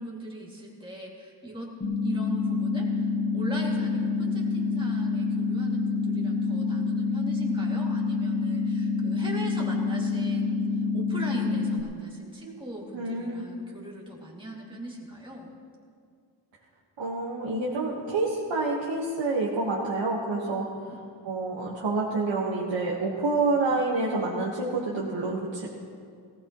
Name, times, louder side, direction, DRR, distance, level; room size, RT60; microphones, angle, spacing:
voice 1, 0.0-1.7 2.0-15.5 20.4-21.0, right 1 dB, 10° right, -4 dB, 2.5 m, -40 dB
sound 1, 1.8-11.8, left 4 dB, 25° left, 1.4 m, -27 dB
voice 2, 12.9-13.4 17.0-20.6 21.2-25.7, right 3 dB, 90° right, -4 dB, 1.7 m, -28 dB
18.5 x 16.5 x 3.1 m, 2.2 s
wide cardioid pair, 105°, 43 cm